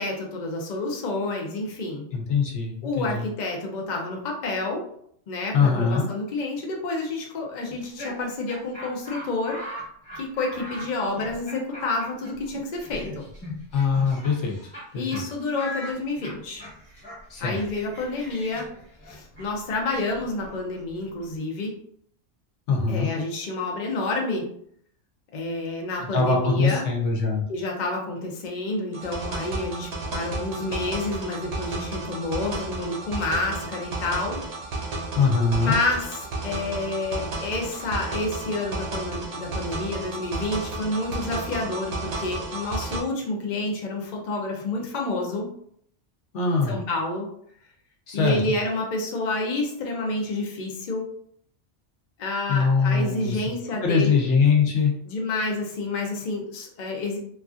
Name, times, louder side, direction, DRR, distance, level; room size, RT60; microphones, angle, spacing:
voice 1, 0.0-2.1 2.8-4.9 5.3-9.6 10.1-13.2 14.9-16.6 17.4-18.7 19.0-21.7 22.9-24.5 25.3-26.8 27.5-34.4 35.6-45.5 46.7-47.3 48.1-51.1 52.2-54.2 55.1-57.2, left 2 dB, 50° left, 0 dB, 0.5 m, -29 dB
voice 2, 2.1-3.2 5.5-6.1 13.7-14.6 14.9-15.2 17.3-17.6 22.7-23.1 26.1-27.4 35.2-35.8 46.3-46.8 48.1-48.4 52.5-53.4 53.8-54.9, left 5 dB, 70° left, 0 dB, 1.0 m, -22 dB
Laughter, 7.7-14.8 15.1-15.2 15.5-21.3, left 1 dB, 25° left, 1.2 m, -40 dB
sound 1, 28.9-43.0, right 2 dB, 65° right, 1.0 m, -33 dB
3.1 x 2.4 x 2.4 m, 0.67 s
omnidirectional pair, 1.3 m